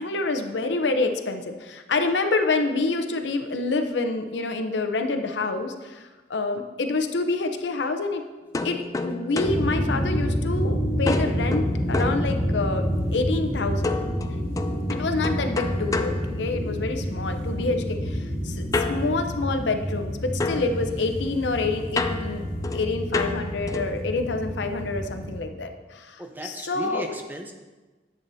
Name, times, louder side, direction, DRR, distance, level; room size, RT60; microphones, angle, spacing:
voice 1, 0.0-8.2 8.6-12.8 13.1-13.9 14.9-22.4 22.7-27.0, left 3 dB, 90° left, 6 dB, 0.7 m, -27 dB
sound 1, 8.5-10.6 11.1-12.9 13.8-17.1 18.7-20.1 20.4-24.1, left 3 dB, 20° left, 0.3 m, -31 dB
sound 2, 9.4-25.4, equal, 50° right, 2.9 m, -28 dB
voice 2, 26.2-27.5, equal, 10° right, 3 dB, 0.7 m, -35 dB
10.5 x 7.7 x 2.7 m, 1.2 s
head